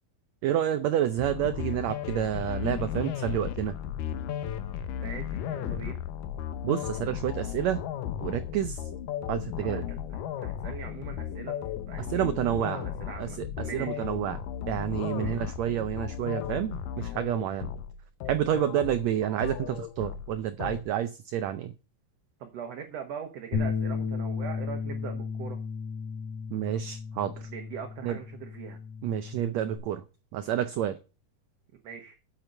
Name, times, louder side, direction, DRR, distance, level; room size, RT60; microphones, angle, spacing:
voice 1, 0.4-3.7 6.6-7.8 8.2-8.8 9.3-9.9 12.0-12.8 13.2-17.7 18.3-21.7 26.5-27.5 28.0-28.2 29.0-30.0 30.3-31.0, right 11 dB, 90° right, 11 dB, 1.5 m, -29 dB
sound 1, 1.2-20.8, left 10 dB, 80° left, 2.5 m, -35 dB
voice 2, 5.0-6.0 9.6-9.8 10.1-11.6 11.9-12.3 12.7-14.1 15.2-15.4 19.2-19.4 22.4-25.6 27.5-28.8 31.8-32.2, right 7 dB, 60° right, 4 dB, 2.0 m, -41 dB
Bass guitar, 23.5-29.8, left 5 dB, 50° left, 2.9 m, -34 dB
8.1 x 6.8 x 7.9 m, 0.33 s
omnidirectional pair, 3.9 m